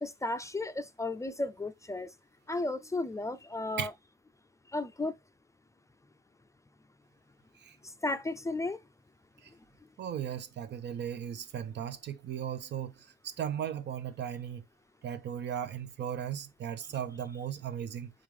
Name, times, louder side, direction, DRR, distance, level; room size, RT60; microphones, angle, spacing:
voice 1, 0.0-2.1 2.5-3.9 4.7-5.1 8.0-8.8, left 2 dB, 15° left, 0.4 m, -34 dB
voice 2, 10.0-12.9 13.2-14.6 15.0-18.1, right 9 dB, 60° right, 0.7 m, -36 dB
3.7 x 3.7 x 3.1 m
cardioid pair, 90°, 20 cm